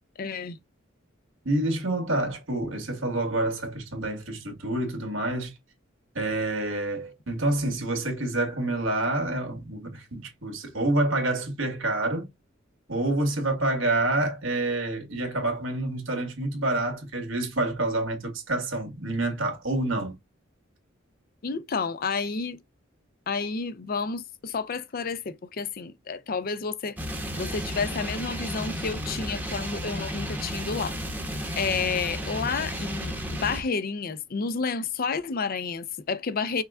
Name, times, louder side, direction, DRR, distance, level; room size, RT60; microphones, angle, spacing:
voice 1, 0.2-0.6 21.4-22.6 23.3-27.0 27.4-33.2 33.4-36.6, left 5 dB, 50° left, 0.5 m, -30 dB
voice 2, 1.5-5.5 6.2-12.3 12.9-20.2, right 2 dB, 90° right, 1.8 m, -28 dB
sound 1, 27.0-33.6, equal, 10° right, 0.9 m, -33 dB
5.7 x 2.2 x 3.6 m
head